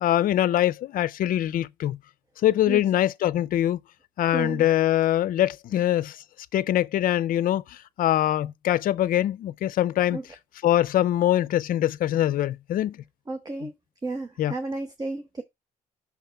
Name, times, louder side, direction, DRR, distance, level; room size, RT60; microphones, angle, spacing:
voice 1, 0.0-2.0 2.4-3.8 4.2-6.2 6.5-10.2 10.6-13.0 14.4-14.5, left 12 dB, 55° left, 0.5 m, -23 dB
voice 2, 4.3-4.6 10.1-10.2 13.3-13.7 14.0-15.4, right 3 dB, 20° right, 0.9 m, -32 dB
6.0 x 3.6 x 5.6 m
cardioid pair, 110°, 17 cm